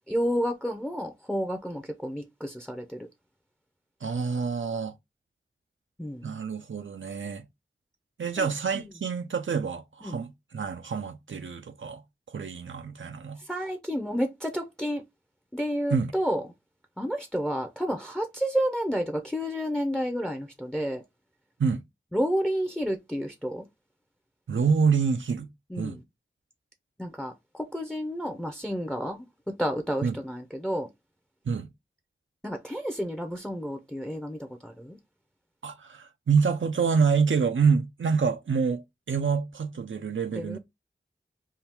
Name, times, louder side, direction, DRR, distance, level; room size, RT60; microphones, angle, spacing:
voice 1, 0.1-3.1 6.0-6.3 8.4-8.9 10.0-10.2 13.4-15.0 15.5-16.4 17.0-21.0 22.1-23.6 25.7-26.0 27.0-29.3 29.6-30.9 32.4-35.0 40.3-40.6, equal, 5° left, 0.6 m, -30 dB
voice 2, 4.0-4.9 6.2-7.4 8.2-12.0 12.3-13.4 15.9-16.1 21.6-21.8 24.5-25.5 25.8-26.0 30.0-30.2 31.5-31.7 35.6-40.6, right 5 dB, 80° right, 0.5 m, -27 dB
3.6 x 2.3 x 4.3 m
wide cardioid pair, 50°, 20 cm